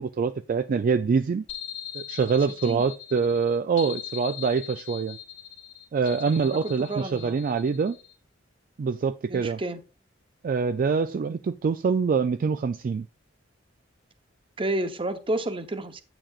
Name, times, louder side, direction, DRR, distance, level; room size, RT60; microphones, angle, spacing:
voice 1, 0.0-1.4 1.9-5.2 5.9-8.0 8.8-9.6 10.4-13.1, right 5 dB, 45° right, 0.3 m, -25 dB
sound 1, 1.5-8.1, left 11 dB, 65° left, 2.0 m, -41 dB
voice 2, 6.3-7.4 9.3-9.8 14.6-16.0, right 1 dB, 25° right, 0.8 m, -31 dB
9.0 x 8.7 x 2.4 m
head